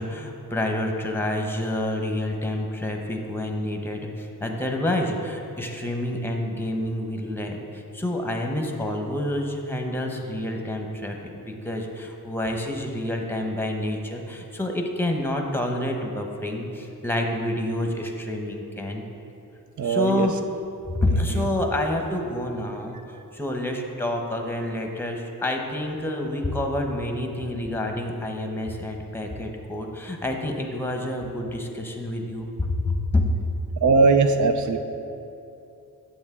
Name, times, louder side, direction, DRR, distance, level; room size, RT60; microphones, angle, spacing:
voice 1, 0.0-19.0 19.8-20.3 20.9-33.2, left 1 dB, 5° left, 2 dB, 0.9 m, -28 dB
voice 2, 19.8-20.3 21.1-21.4 33.8-34.8, right 4 dB, 55° right, 7 dB, 0.6 m, -20 dB
8.0 x 7.2 x 3.6 m, 2.8 s
cardioid pair, 90°, 35 cm